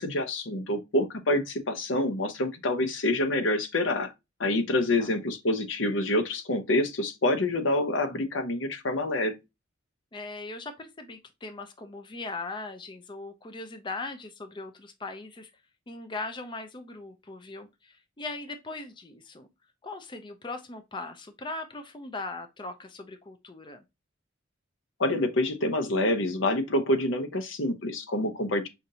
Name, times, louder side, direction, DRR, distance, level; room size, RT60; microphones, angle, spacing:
voice 1, 0.0-4.1 4.4-9.3 25.0-28.7, left 1 dB, 70° left, 0.9 m, -27 dB
voice 2, 4.5-5.1 10.1-15.5 15.9-19.5 19.8-23.8, left 3 dB, 25° left, 0.5 m, -39 dB
5.8 x 2.6 x 2.7 m
head